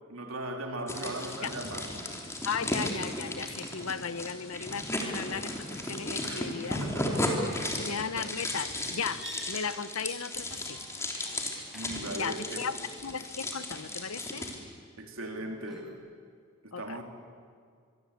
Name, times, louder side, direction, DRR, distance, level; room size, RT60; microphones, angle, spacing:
voice 1, 0.1-1.9 6.2-6.5 6.8-7.3 7.7-7.8 11.7-12.6 15.0-15.9 16.6-17.0, right 1 dB, 70° right, 3 dB, 3.4 m, -38 dB
sound 1, 0.9-14.6, left 1 dB, 15° left, 3.3 m, -35 dB
voice 2, 2.4-5.5 5.9-6.8 7.8-10.8 12.2-14.5 16.7-17.0, left 6 dB, 85° left, 14 dB, 0.9 m, -36 dB
sound 2, 9.1-12.3 15.3-15.9, equal, ahead, 5.7 m, -49 dB
25.0 x 23.0 x 8.4 m, 2.1 s
head